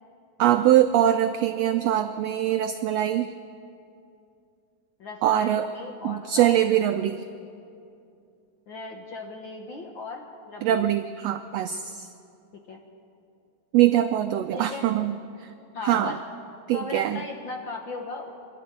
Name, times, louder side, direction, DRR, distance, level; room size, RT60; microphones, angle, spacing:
voice 1, 0.4-3.3 5.2-5.7 6.0-7.2 10.6-12.1 13.7-15.1 15.4-15.5 15.9-16.1 16.7-17.2, right 12 dB, 85° right, 9 dB, 1.4 m, -22 dB
voice 2, 5.0-6.6 8.7-10.9 12.7-12.8 14.5-14.9 15.7-16.2 16.7-18.3, left 3 dB, 55° left, 2 dB, 1.4 m, -37 dB
24.5 x 12.0 x 9.3 m, 2.6 s
omnidirectional pair, 3.6 m